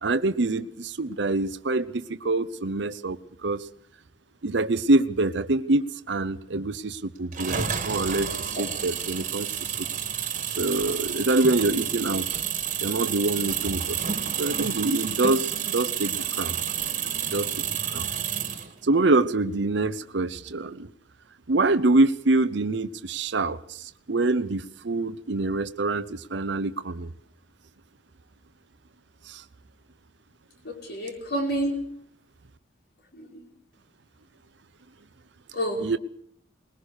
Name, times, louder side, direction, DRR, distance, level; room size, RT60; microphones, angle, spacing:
voice 1, 0.0-3.7 4.4-9.9 10.6-12.4 12.8-16.6 17.3-17.6 17.9-18.1 18.8-20.9 21.5-27.1 29.3-29.4 35.8-36.0, right 2 dB, 65° right, 12 dB, 0.8 m, -25 dB
sound 1, 7.3-18.7, right 8 dB, 40° right, 1.9 m, -30 dB
voice 2, 30.6-31.8 33.1-33.5 35.5-35.9, right 1 dB, 55° left, 2 dB, 4.6 m, -29 dB
21.0 x 19.5 x 6.5 m, 0.64 s
head